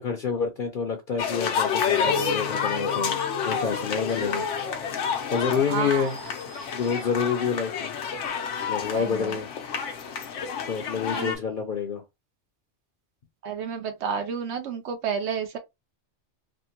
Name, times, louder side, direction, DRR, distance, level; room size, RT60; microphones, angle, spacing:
voice 1, 0.0-4.4 5.3-6.2 6.7-7.9 8.7-9.5 10.6-12.0, left 6 dB, 55° left, 0.8 m, -28 dB
sound 1, 1.2-11.4, left 6 dB, 85° left, 1.0 m, -29 dB
Bass guitar, 2.1-6.5 7.1-8.3, left 10 dB, 70° left, 1.2 m, -46 dB
voice 2, 5.7-6.2 8.9-9.4 11.1-11.4 13.4-15.6, right 6 dB, 75° right, 0.8 m, -31 dB
3.6 x 2.1 x 2.8 m
omnidirectional pair, 1.2 m